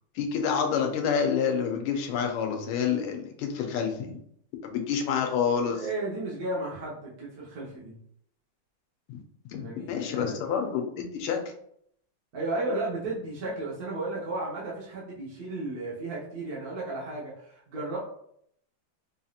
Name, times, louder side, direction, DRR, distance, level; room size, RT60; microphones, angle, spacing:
voice 1, 0.1-4.2 4.6-5.8 9.1-9.2 9.5-11.4, left 7 dB, 85° left, 4 dB, 1.5 m, -28 dB
voice 2, 5.7-8.0 9.5-10.4 12.3-18.0, right 2 dB, 55° right, -6 dB, 1.3 m, -34 dB
4.9 x 2.8 x 2.4 m, 0.69 s
omnidirectional pair, 2.4 m